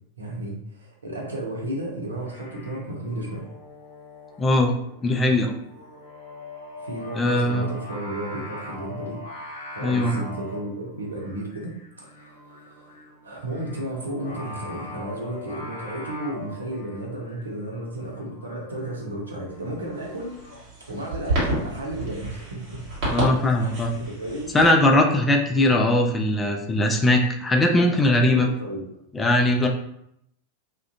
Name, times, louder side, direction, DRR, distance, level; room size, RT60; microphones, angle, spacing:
voice 1, 0.2-3.5 6.8-9.2 9.8-11.7 12.0-13.0 13.2-20.4 20.8-22.8 23.6-24.5 28.3-28.8, right 1 dB, 75° right, -1 dB, 0.6 m, -33 dB
Singing, 2.1-20.6, left 1 dB, 55° left, 0.8 m, -42 dB
voice 2, 4.4-4.7 5.0-5.5 7.2-7.7 9.8-10.2 23.1-23.9 24.5-28.5 29.1-29.7, left 1 dB, 15° left, 2 dB, 0.3 m, -20 dB
sound 1, 19.5-24.7, right 1 dB, 45° right, 1.2 m, -30 dB
2.4 x 2.1 x 2.6 m, 0.76 s
figure-of-eight pair, 90°, 0 cm